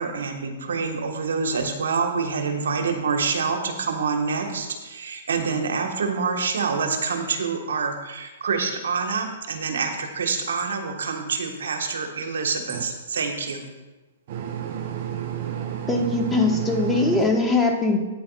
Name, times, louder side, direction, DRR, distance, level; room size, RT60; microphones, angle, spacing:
voice 1, 0.0-13.6, right 5 dB, 65° right, 4 dB, 1.3 m, -26 dB
voice 2, 14.3-17.2, right 10 dB, 45° right, 4 dB, 0.7 m, -31 dB
voice 3, 15.9-18.0, left 3 dB, 5° left, 0 dB, 1.4 m, -21 dB
13.5 x 9.0 x 2.4 m, 1.2 s
figure-of-eight pair, 115°, 0 cm